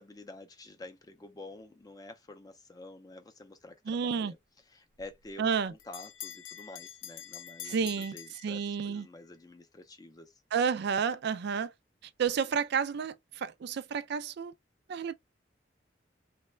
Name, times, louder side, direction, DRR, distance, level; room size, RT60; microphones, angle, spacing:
voice 1, 0.0-4.4 4.7-10.4, left 2 dB, 20° left, 0.4 m, -49 dB
voice 2, 3.9-4.3 5.4-5.7 7.6-8.2 8.4-9.1 10.5-11.7 12.2-14.5 14.9-15.1, right 6 dB, 60° right, 0.3 m, -30 dB
Bell, 5.0-9.1, left 10 dB, 85° left, 0.4 m, -46 dB
3.1 x 2.1 x 3.1 m
head